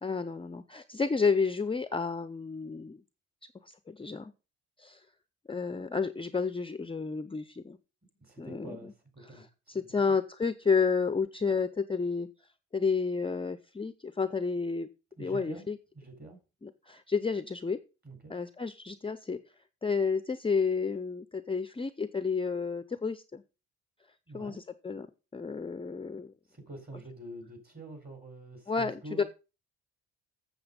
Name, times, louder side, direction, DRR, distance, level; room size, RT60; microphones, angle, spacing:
voice 1, 0.0-3.0 3.7-4.3 4.8-5.0 5.5-7.8 8.4-8.8 9.3-12.3 12.7-14.9 15.2-15.8 16.6-17.8 18.3-19.4 19.8-23.4 24.3-25.1 25.3-26.3 28.7-29.2, left 5 dB, 15° left, 11 dB, 0.6 m, -31 dB
voice 2, 8.2-10.0 15.2-15.7 15.9-16.4 18.0-18.3 24.3-24.6 26.5-29.2, right 2 dB, 30° right, 6 dB, 3.9 m, -46 dB
7.9 x 7.1 x 5.3 m, 0.32 s
cardioid pair, 90°, 30 cm